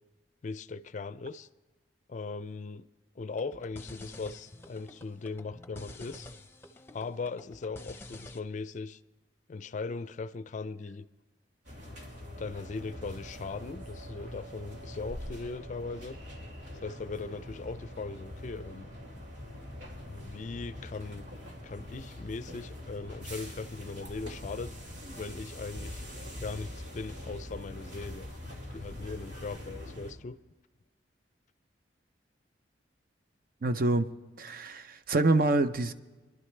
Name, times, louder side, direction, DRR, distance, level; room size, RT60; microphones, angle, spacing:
voice 1, 0.4-1.5 2.1-2.9 3.2-6.3 6.9-9.0 9.5-11.1 12.4-16.2 16.7-18.9 20.0-21.3 21.6-24.7 25.2-26.0 26.4-28.3 28.7-30.4, left 4 dB, 45° left, 0.4 m, -39 dB
sound 1, 3.3-8.4, left 2 dB, 15° left, 0.7 m, -49 dB
sound 2, 11.6-30.1, left 1 dB, 85° right, 2.5 m, -43 dB
voice 2, 33.6-34.1 34.4-35.9, right 2 dB, 55° right, 0.6 m, -26 dB
25.0 x 11.0 x 3.2 m
head